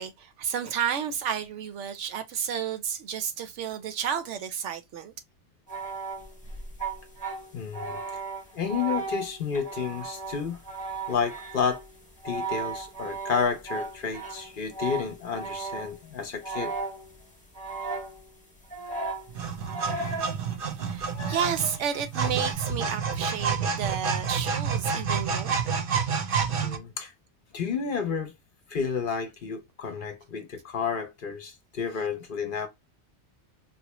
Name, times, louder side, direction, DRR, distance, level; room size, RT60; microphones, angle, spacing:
voice 1, 0.0-5.1 20.8-25.6, right 8 dB, 85° right, 1.0 m, -31 dB
sound 1, 5.7-16.0 16.4-17.3 17.5-18.4 18.7-20.4 21.1-22.5, right 3 dB, 10° left, 0.8 m, -36 dB
voice 2, 7.5-8.2 8.5-10.6 11.1-11.8 12.2-16.8 26.6-27.1 27.5-28.3 28.7-32.7, left 6 dB, 55° left, 0.7 m, -31 dB
sound 2, 19.3-26.8, right 6 dB, 60° right, 0.8 m, -29 dB
4.2 x 2.1 x 2.9 m
omnidirectional pair, 1.2 m